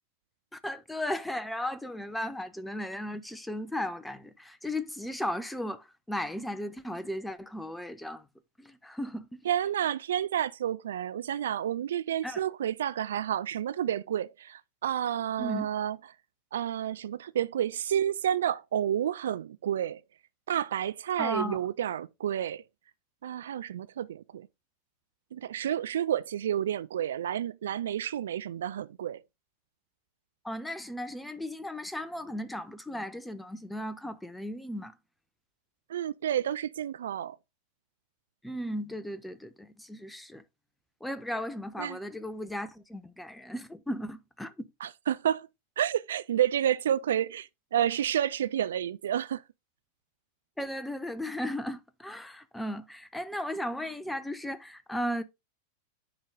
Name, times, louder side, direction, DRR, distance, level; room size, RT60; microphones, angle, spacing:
voice 1, 0.5-8.3 8.6-9.4 12.2-12.4 15.4-15.7 21.2-21.6 30.4-34.9 38.4-40.4 41.0-44.7 50.6-55.2, left 1 dB, 5° left, 0.8 m, -36 dB
voice 2, 9.5-16.0 16.5-20.0 20.5-22.6 23.2-24.5 25.3-29.2 35.9-37.4 41.8-42.0 44.8-45.5 45.8-49.4, right 10 dB, 60° right, 0.3 m, -30 dB
9.8 x 4.0 x 3.7 m
figure-of-eight pair, 90°, 0 cm